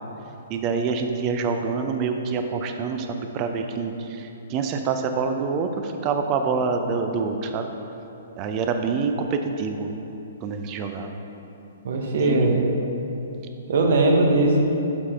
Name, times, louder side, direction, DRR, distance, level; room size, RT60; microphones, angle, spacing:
voice 1, 0.5-7.7 8.4-9.9 10.4-11.2 12.2-12.6, right 5 dB, 30° right, 6 dB, 0.5 m, -26 dB
voice 2, 11.8-12.6 13.7-14.6, right 2 dB, 55° right, 1 dB, 1.0 m, -19 dB
7.1 x 4.9 x 4.3 m, 3.0 s
figure-of-eight pair, 120°, 0 cm